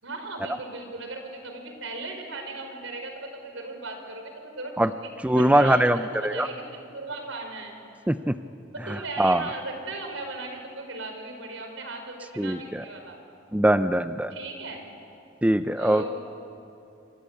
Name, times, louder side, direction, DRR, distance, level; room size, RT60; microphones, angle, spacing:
voice 1, 0.0-5.1 5.3-7.8 8.7-13.2 14.3-14.8 15.8-16.1, right 2 dB, 85° right, 4 dB, 5.0 m, -37 dB
voice 2, 5.2-6.5 8.1-8.3 9.2-9.4 12.4-12.8 13.5-14.3 15.4-16.0, right 1 dB, 5° right, 10 dB, 0.5 m, -22 dB
27.5 x 25.0 x 8.4 m, 2.8 s
head